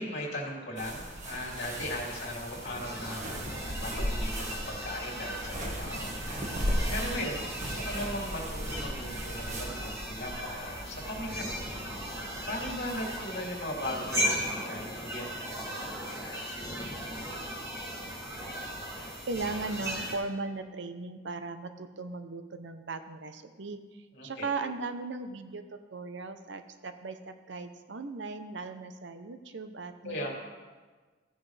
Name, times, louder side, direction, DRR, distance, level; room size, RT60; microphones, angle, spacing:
voice 1, 0.0-6.4 6.9-11.6 12.4-16.9 24.1-24.5 30.0-30.4, left 1 dB, 60° left, -2 dB, 2.9 m, -38 dB
sound 1, 0.8-13.2, equal, 40° right, 1.6 m, -37 dB
sound 2, 1.0-20.2, equal, 15° right, 3.2 m, -38 dB
voice 2, 19.3-30.3, right 3 dB, 65° right, 9 dB, 0.7 m, -38 dB
16.0 x 9.7 x 3.4 m, 1.4 s
head